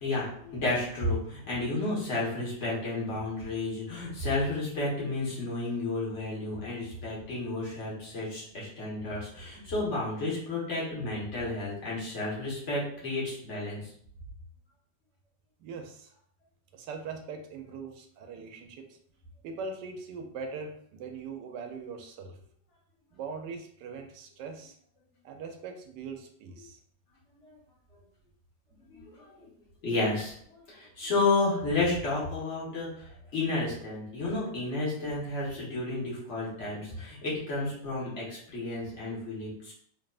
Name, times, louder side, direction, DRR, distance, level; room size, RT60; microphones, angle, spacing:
voice 1, 0.0-13.8 28.9-29.5 29.8-30.3 30.7-39.7, left 2 dB, 45° left, -6 dB, 1.6 m, -31 dB
voice 2, 15.6-16.1 16.7-18.8 19.4-22.3 23.1-24.7 25.2-26.8, right 5 dB, 80° right, 4 dB, 1.2 m, -41 dB
3.8 x 3.3 x 2.4 m, 0.62 s
omnidirectional pair, 1.9 m